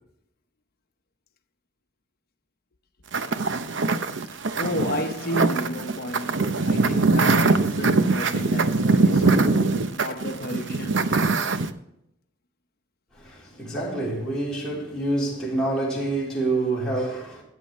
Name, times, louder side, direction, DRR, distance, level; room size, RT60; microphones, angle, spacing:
sound 1, 3.1-11.7, right 3 dB, 65° right, 0.7 m, -22 dB
voice 1, 4.6-11.1, equal, 50° left, 1.0 m, -32 dB
voice 2, 13.1-17.4, right 2 dB, 5° left, 3.6 m, -27 dB
14.0 x 9.1 x 3.2 m
head